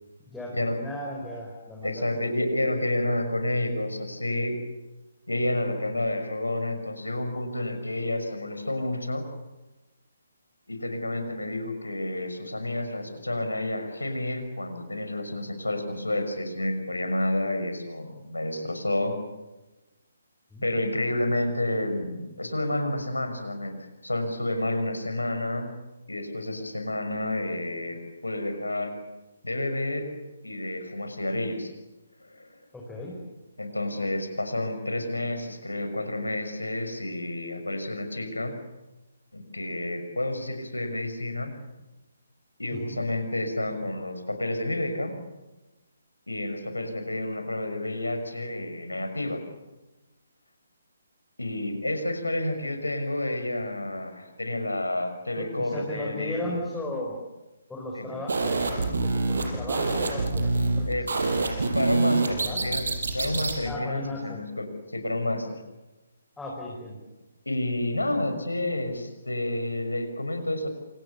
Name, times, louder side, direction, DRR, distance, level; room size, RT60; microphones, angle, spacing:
voice 1, 0.3-2.1 20.5-20.6 32.7-33.2 42.7-43.0 55.4-57.2 57.7-60.9 61.3-61.6 62.3-62.7 63.6-64.4 66.4-67.0, left 1 dB, 5° left, -3 dB, 5.2 m, -36 dB
voice 2, 1.8-4.6 5.3-9.2 10.7-19.2 20.6-25.7 26.1-28.9 29.4-30.1 30.4-31.7 32.2-32.5 33.6-38.6 39.3-41.5 42.6-45.2 46.3-49.4 51.4-56.5 57.9-58.1 60.9-61.1 61.7-62.8 63.1-65.6 67.4-70.7, left 1 dB, 75° left, 8 dB, 6.2 m, -30 dB
sound 1, 58.3-63.6, right 3 dB, 60° right, 6.3 m, -26 dB
29.0 x 27.0 x 7.1 m, 1.1 s
figure-of-eight pair, 140°, 0 cm